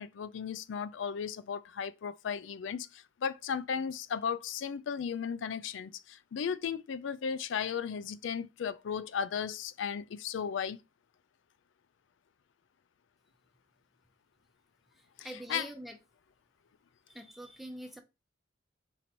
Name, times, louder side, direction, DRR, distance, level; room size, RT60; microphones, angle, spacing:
voice 1, 0.0-10.8 15.2-15.7, left 7 dB, 80° left, 0.4 m, -35 dB
voice 2, 15.0-16.0 17.1-18.0, right 1 dB, ahead, 0.7 m, -45 dB
4.0 x 3.1 x 4.2 m
head